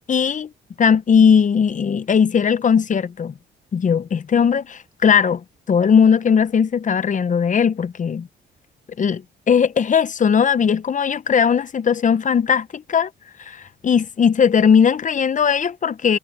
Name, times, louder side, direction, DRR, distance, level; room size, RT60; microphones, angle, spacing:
voice 1, 0.1-0.5 0.8-3.3 3.7-8.3 9.0-13.1 13.4-16.2, left 7 dB, 40° left, 0.8 m, -18 dB
cardioid pair, 90°, 20 cm